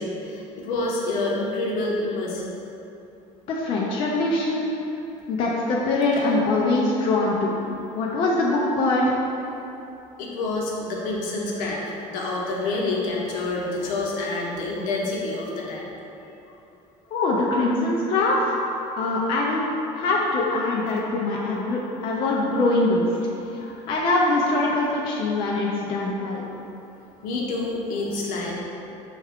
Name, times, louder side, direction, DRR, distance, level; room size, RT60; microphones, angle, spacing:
voice 1, 0.0-2.4 10.2-15.9 23.6-23.7 27.2-28.5, left 2 dB, 70° left, -3 dB, 0.8 m, -28 dB
voice 2, 3.5-4.8 5.3-7.5 7.9-9.1 17.1-18.6 19.0-19.7 19.9-23.1 23.6-26.4, left 2 dB, 40° left, -3 dB, 0.4 m, -23 dB
5.4 x 2.3 x 3.5 m, 2.9 s
cardioid pair, 165°, 14 cm